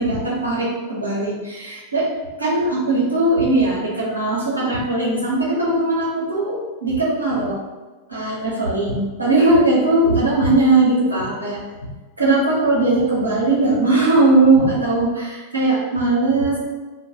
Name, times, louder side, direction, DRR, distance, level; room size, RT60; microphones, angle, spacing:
voice 1, 0.0-7.6 8.1-11.6 12.2-16.6, right 2 dB, 85° right, -6 dB, 0.7 m, -19 dB
2.3 x 2.2 x 2.8 m, 1.2 s
figure-of-eight pair, 90°, 0 cm